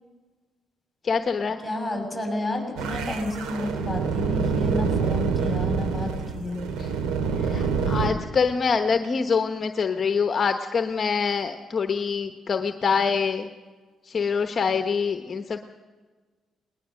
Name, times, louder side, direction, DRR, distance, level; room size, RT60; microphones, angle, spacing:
voice 1, 1.0-1.6 6.8-6.9 7.4-13.5 14.0-15.6, left 5 dB, 45° left, 7 dB, 1.0 m, -25 dB
voice 2, 1.6-6.6, left 1 dB, 5° left, 2 dB, 6.4 m, -31 dB
sound 1, 2.8-8.1, right 5 dB, 85° right, 2.0 m, -26 dB
20.5 x 19.5 x 6.6 m, 1.4 s
cardioid pair, 90°, 0 cm